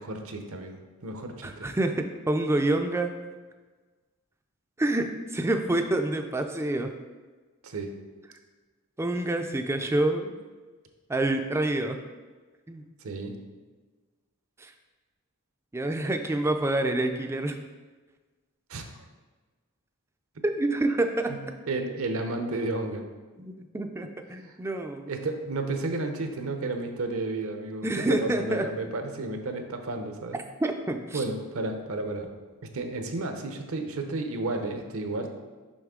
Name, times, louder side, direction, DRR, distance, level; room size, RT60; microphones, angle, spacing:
voice 1, 0.0-1.7 7.6-7.9 13.0-13.4 18.7-18.9 21.3-21.4 21.7-23.0 24.5-24.6 25.1-30.4 31.1-32.3 32.7-35.3, right 2 dB, 70° right, 5 dB, 0.7 m, -32 dB
voice 2, 1.4-3.1 4.8-6.9 9.0-10.3 11.1-12.0 12.7-12.8 14.6-14.7 15.7-17.6 20.4-21.3 23.4-25.1 27.8-28.7 30.6-31.2, right 2 dB, 10° right, 6 dB, 0.3 m, -27 dB
6.2 x 5.5 x 3.7 m, 1.3 s
head